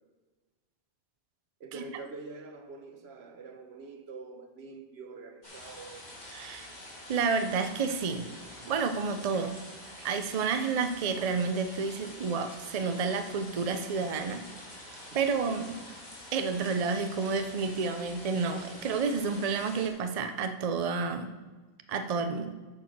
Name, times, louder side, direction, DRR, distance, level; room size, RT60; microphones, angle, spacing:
voice 1, 1.6-6.1 15.1-15.3, right 4 dB, 80° right, 6 dB, 1.2 m, -45 dB
sound 1, 5.4-19.9, left 1 dB, 45° left, 2.1 m, -47 dB
voice 2, 6.3-6.7 7.1-8.3 8.6-9.6 10.0-14.4 15.1-15.6 16.3-21.3 21.9-22.5, right 5 dB, 45° right, 8 dB, 0.6 m, -30 dB
9.1 x 5.8 x 6.2 m, 1.3 s
omnidirectional pair, 1.1 m